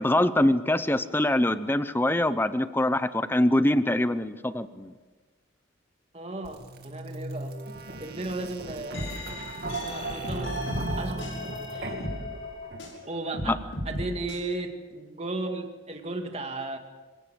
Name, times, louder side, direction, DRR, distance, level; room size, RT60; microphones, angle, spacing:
voice 1, 0.0-4.9 13.5-13.6, left 1 dB, 10° left, 13 dB, 0.8 m, -24 dB
voice 2, 6.1-7.6 8.0-9.2 9.7-11.2 11.7-12.2 13.1-13.6 13.9-16.8, right 2 dB, 35° right, 5 dB, 2.2 m, -35 dB
sound 1, 6.4-13.2, right 2 dB, 55° right, 2.3 m, -37 dB
sound 2, 8.9-13.0 13.3-14.4, left 1 dB, 80° left, 6.5 m, -36 dB
25.5 x 17.0 x 7.7 m, 1.3 s
head